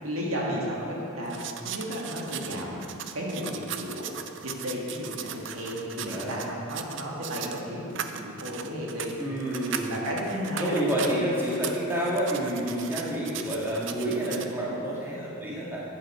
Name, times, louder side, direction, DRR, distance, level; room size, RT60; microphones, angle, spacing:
voice 1, 0.0-2.8 3.1-4.1 4.4-9.1 9.9-10.7 11.1-11.2, equal, 80° right, -3 dB, 2.1 m, -33 dB
sound 1, 1.3-7.6 7.9-11.2 11.5-14.5, right 8 dB, 55° right, 0.5 m, -38 dB
voice 2, 6.1-6.5 9.2-9.9 10.6-15.8, right 1 dB, 10° right, -6 dB, 1.8 m, -29 dB
11.0 x 8.9 x 4.9 m, 2.6 s
head